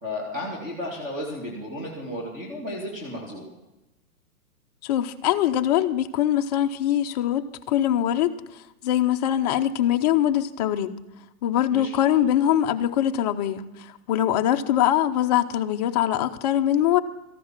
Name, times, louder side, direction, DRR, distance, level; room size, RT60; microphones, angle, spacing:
voice 1, 0.0-3.5 11.7-11.9, left 1 dB, 20° right, -2 dB, 2.5 m, -33 dB
voice 2, 4.8-8.3 8.8-10.9 11.4-17.0, left 11 dB, 30° left, 6 dB, 0.7 m, -23 dB
14.0 x 11.5 x 6.0 m, 1.0 s
hypercardioid pair, 150°, 44 cm